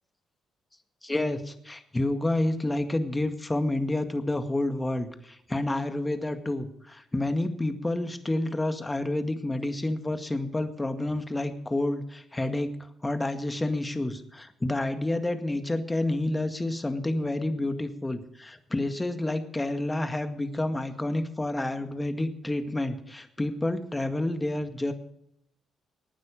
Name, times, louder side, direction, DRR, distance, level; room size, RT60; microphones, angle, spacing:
voice 1, 1.0-24.9, left 1 dB, 20° left, 8 dB, 1.9 m, -29 dB
19.0 x 9.6 x 5.1 m, 0.75 s
hypercardioid pair, 55°, 0 cm